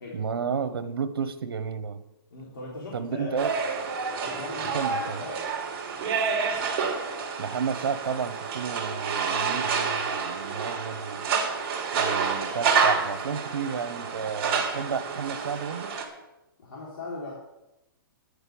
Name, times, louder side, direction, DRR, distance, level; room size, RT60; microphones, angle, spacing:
voice 1, 0.1-2.0 2.9-3.5 4.7-5.2 7.4-11.2 11.9-15.9, right 6 dB, 80° right, 11 dB, 1.3 m, -31 dB
voice 2, 2.3-3.3 4.2-5.4 16.6-17.3, left 3 dB, 65° left, -4 dB, 3.5 m, -39 dB
sound 1, 3.4-16.0, right 5 dB, 30° right, 2.3 m, -29 dB
9.9 x 6.8 x 8.6 m, 0.94 s
hypercardioid pair, 170°, 12 cm